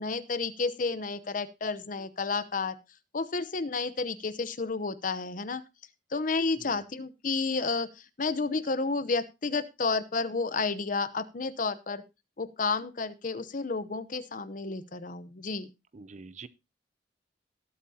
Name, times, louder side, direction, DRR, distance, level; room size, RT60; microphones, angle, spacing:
voice 1, 0.0-2.8 3.1-5.6 6.1-12.0 12.4-15.7, left 4 dB, 45° left, 14 dB, 0.8 m, -31 dB
voice 2, 15.9-16.5, right 4 dB, 40° right, 17 dB, 0.5 m, -46 dB
19.5 x 8.4 x 2.8 m, 0.25 s
head